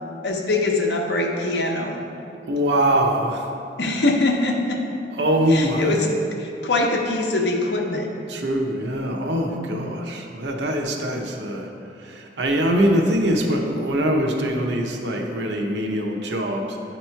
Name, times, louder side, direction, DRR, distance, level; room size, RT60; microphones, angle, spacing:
voice 1, 0.2-2.0 3.8-4.8 5.5-6.1 6.4-8.1 9.4-9.9, left 2 dB, 75° left, 1 dB, 0.7 m, -23 dB
voice 2, 2.4-3.5 5.1-6.0 8.3-11.7 12.0-16.8, equal, 80° right, 1 dB, 0.7 m, -23 dB
8.8 x 3.0 x 4.4 m, 2.6 s
head